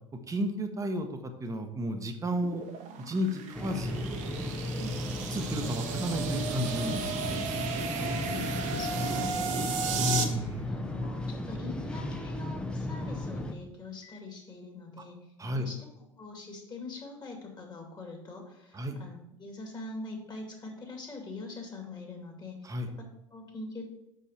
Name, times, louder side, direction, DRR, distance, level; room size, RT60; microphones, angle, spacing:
voice 1, 0.3-1.1 1.4-2.6 3.1-4.0 4.8-5.0 5.3-7.4 10.0-10.7 15.4-15.7 18.7-19.0 22.6-22.9, equal, 20° right, 5 dB, 1.1 m, -32 dB
sound 1, 2.3-10.2, right 5 dB, 50° right, 1.1 m, -34 dB
sound 2, 3.5-13.5, left 1 dB, 5° left, 0.8 m, -35 dB
sound 3, 6.0-6.2 7.0-7.2 8.0-8.2 9.0-9.2 10.0-10.2 11.0-11.2 12.0-12.2 13.0-13.2 14.0-14.2, left 3 dB, 80° left, 0.9 m, -54 dB
voice 2, 8.2-15.2 15.5-22.7 23.0-23.9, left 3 dB, 25° left, 1 dB, 2.6 m, -43 dB
6.2 x 5.5 x 5.6 m, 0.83 s
hypercardioid pair, 75°, 16 cm